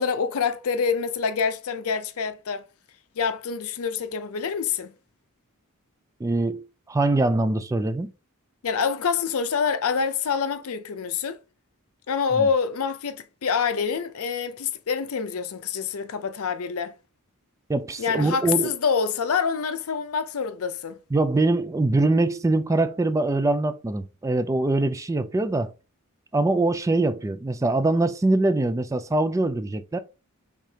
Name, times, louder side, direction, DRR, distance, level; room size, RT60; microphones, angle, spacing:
voice 1, 0.0-2.6 3.2-4.9 8.6-11.4 12.1-16.9 18.0-21.0, left 6 dB, 70° left, 0.5 m, -26 dB
voice 2, 6.2-8.1 12.4-12.5 17.7-18.7 21.1-25.7 26.3-30.0, right 2 dB, 15° right, 0.3 m, -23 dB
5.0 x 3.5 x 2.8 m
head